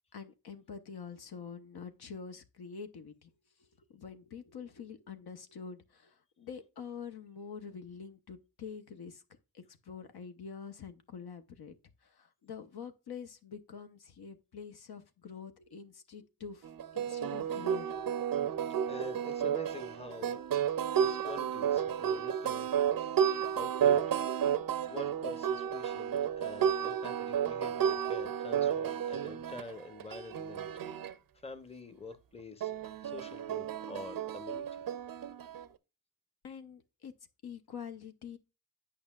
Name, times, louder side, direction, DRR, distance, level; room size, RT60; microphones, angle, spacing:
voice 1, 0.1-3.3 3.9-9.2 9.5-11.8 12.0-17.9 36.4-37.1 37.4-38.4, left 6 dB, 55° left, 0.8 m, -46 dB
sound 1, 16.6-31.1 32.6-35.7, right 9 dB, 50° right, 0.6 m, -32 dB
voice 2, 18.9-22.7 23.0-23.1 23.5-24.2 24.6-30.7 31.4-34.6, left 3 dB, 15° left, 0.9 m, -47 dB
8.6 x 5.4 x 2.3 m
supercardioid pair, 45°, 45 cm